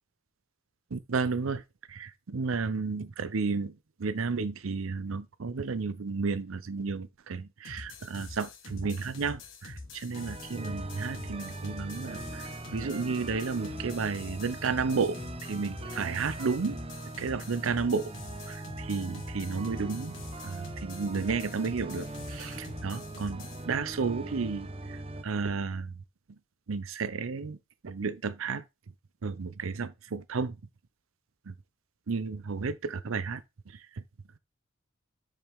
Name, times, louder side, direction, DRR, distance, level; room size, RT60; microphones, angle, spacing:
voice 1, 0.9-1.6 1.9-3.7 4.0-15.1 15.4-16.8 17.2-18.1 18.5-20.1 20.4-25.0 25.2-25.9 26.7-27.6 27.8-28.6 29.2-30.6 31.5-31.6 32.1-33.4, right 4 dB, 90° right, 0.6 m, -32 dB
sound 1, 7.6-23.6, left 3 dB, 70° left, 1.6 m, -46 dB
sound 2, 10.1-25.2, right 2 dB, 30° right, 0.7 m, -41 dB
7.3 x 5.0 x 3.5 m
head